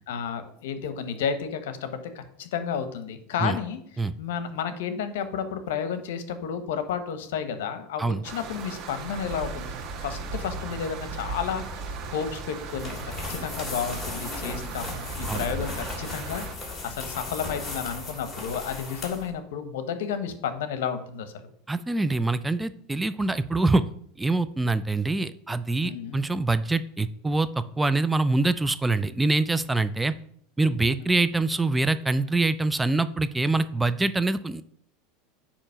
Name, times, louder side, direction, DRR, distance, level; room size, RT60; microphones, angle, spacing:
voice 1, 0.1-9.7 10.0-16.4 16.8-21.5 25.8-26.2 30.8-30.9, left 7 dB, 80° left, 10 dB, 0.9 m, -32 dB
sound 1, 8.2-16.5, right 4 dB, 50° right, 1.2 m, -36 dB
sound 2, 12.7-19.3, left 3 dB, 20° left, 2.9 m, -37 dB
voice 2, 21.7-23.8 24.2-30.1 30.6-34.6, right 2 dB, 10° right, 13 dB, 0.3 m, -25 dB
8.7 x 3.0 x 5.6 m, 0.64 s
supercardioid pair, 120°, 0 cm